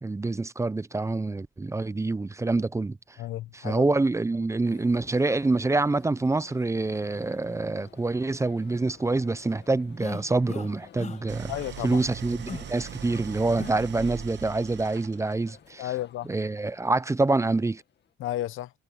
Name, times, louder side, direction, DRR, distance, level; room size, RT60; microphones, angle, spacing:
voice 1, 0.0-3.2 3.5-11.5 11.8-15.9 16.2-17.8, right 3 dB, 15° right, 0.6 m, -26 dB
voice 2, 3.2-3.8 11.5-12.0 15.8-16.3 18.2-18.7, left 14 dB, 85° left, 1.0 m, -32 dB
sound 1, 4.6-18.1, left 9 dB, 60° left, 2.0 m, -53 dB
sound 2, 10.0-10.7 11.0-11.2 11.6-11.7 12.5-12.7 13.6-13.8, left 5 dB, 35° left, 1.2 m, -38 dB
Idling, 11.3-15.5, right 10 dB, 60° right, 1.0 m, -40 dB
cardioid pair, 90°, 20 cm